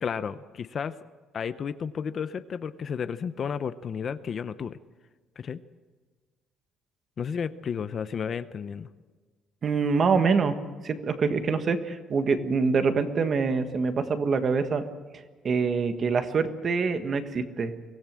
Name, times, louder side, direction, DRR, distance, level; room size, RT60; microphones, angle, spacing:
voice 1, 0.0-1.0 1.3-4.8 5.4-5.6 7.2-8.9, left 7 dB, 35° left, 13 dB, 0.6 m, -32 dB
voice 2, 9.6-10.5 10.8-14.8 15.4-17.7, right 5 dB, 30° right, 9 dB, 1.5 m, -25 dB
24.0 x 18.0 x 7.5 m, 1.4 s
cardioid pair, 175°, 0 cm